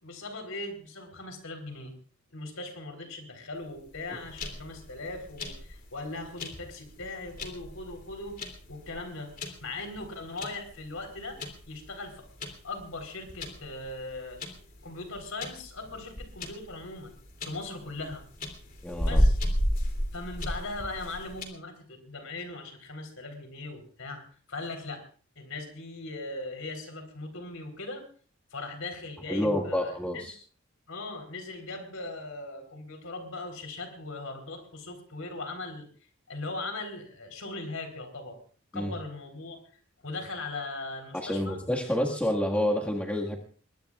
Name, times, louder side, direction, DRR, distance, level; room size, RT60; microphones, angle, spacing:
voice 1, 0.0-1.9 2.3-8.4 8.7-9.3 9.6-12.2 12.6-14.4 14.8-17.1 17.4-18.2 19.0-19.4 20.1-24.2 24.5-25.0 25.4-28.0 28.5-30.3 30.9-35.9 36.3-38.4 38.7-39.6 40.0-41.6, left 2 dB, 80° left, 6 dB, 4.1 m, -39 dB
sound 1, 3.9-21.4, equal, 40° left, 3.0 m, -33 dB
voice 2, 18.8-19.2 29.3-30.3 38.7-38.9 41.1-43.4, left 1 dB, 5° left, -2 dB, 1.8 m, -28 dB
22.5 x 21.0 x 2.5 m, 0.42 s
head